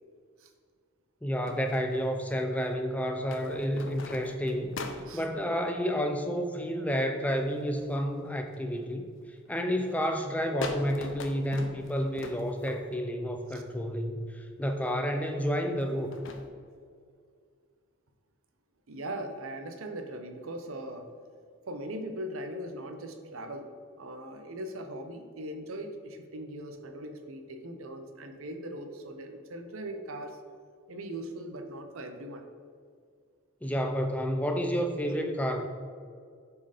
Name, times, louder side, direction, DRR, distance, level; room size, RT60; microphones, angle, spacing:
voice 1, 1.2-9.1 9.5-16.1 33.6-35.7, equal, 5° left, 4 dB, 0.4 m, -30 dB
sound 1, 1.5-2.4 3.3-5.3 7.4-8.0 8.5-8.9 9.5-9.7 10.0-10.1 10.6-13.1 13.9-14.0 15.8-16.5, left 3 dB, 60° left, 0.6 m, -41 dB
voice 2, 18.9-21.1 21.7-23.7 24.0-30.4 30.9-32.4, right 1 dB, 70° right, 6 dB, 0.7 m, -40 dB
7.0 x 4.4 x 4.9 m, 2.1 s
head